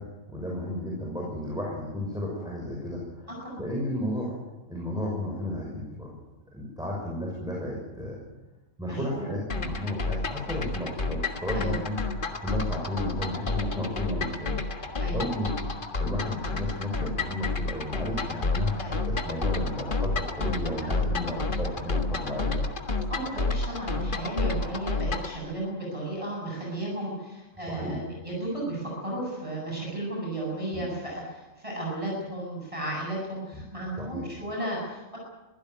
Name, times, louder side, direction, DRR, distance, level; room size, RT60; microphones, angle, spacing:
voice 1, 0.0-3.3 3.6-4.4 4.7-6.1 6.5-8.2 8.8-12.0 12.4-14.6 15.1-15.5 16.0-22.7 24.6-24.7 27.7-28.0 30.7-30.8 33.5-33.6 34.0-34.2, left 1 dB, 5° right, -3 dB, 5.9 m, -33 dB
voice 2, 8.8-9.3 11.5-11.8 15.0-15.2 18.8-18.9 21.2-21.4 23.1-35.2, right 1 dB, 25° right, -4 dB, 7.8 m, -34 dB
sound 1, 9.5-25.4, left 3 dB, 40° left, 1.7 m, -30 dB
24.5 x 16.0 x 9.3 m, 1.1 s
omnidirectional pair, 1.4 m